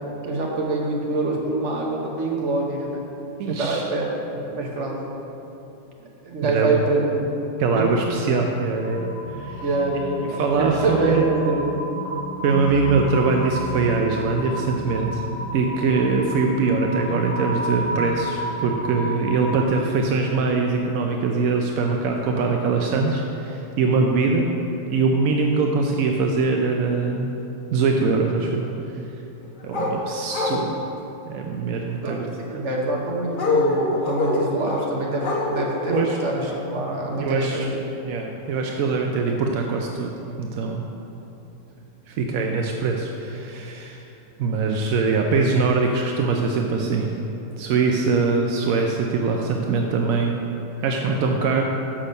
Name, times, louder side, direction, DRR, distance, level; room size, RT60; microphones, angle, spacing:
voice 1, 0.2-3.1 3.5-5.0 6.0-7.3 7.8-7.9 9.6-11.6 32.0-37.7, right 2 dB, 45° right, -1 dB, 1.2 m, -25 dB
voice 2, 3.4-3.8 6.4-6.7 7.6-9.7 10.4-11.2 12.4-15.2 15.5-24.5 24.9-27.4 27.7-28.7 29.6-30.8 31.3-32.3 35.9-36.2 37.2-37.7 38.0-40.1 40.4-40.8 42.1-44.0 44.4-47.1 47.6-50.4 50.8-51.6, right 4 dB, 75° right, 1 dB, 0.8 m, -22 dB
sound 1, 8.8-19.6, right 1 dB, 75° left, 2.8 m, -31 dB
sound 2, 29.7-29.9 30.3-30.6 33.3-34.9 35.2-36.1 36.5-36.6, left 3 dB, 40° left, 0.8 m, -24 dB
6.2 x 5.7 x 6.7 m, 2.9 s
omnidirectional pair, 1.9 m